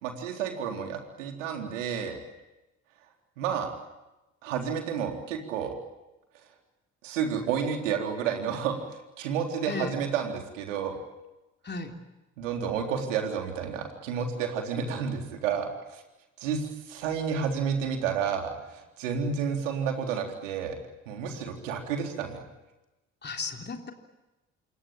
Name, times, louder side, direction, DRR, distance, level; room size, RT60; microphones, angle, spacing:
voice 1, 0.0-2.2 3.4-3.7 4.4-5.7 7.0-11.0 12.4-16.0 16.4-20.8 21.1-22.4, right 7 dB, 75° right, 4 dB, 4.0 m, -31 dB
voice 2, 11.6-12.0 23.2-23.9, left 4 dB, 25° left, 4 dB, 3.6 m, -35 dB
28.0 x 23.5 x 8.9 m, 1.0 s
figure-of-eight pair, 50°, 37 cm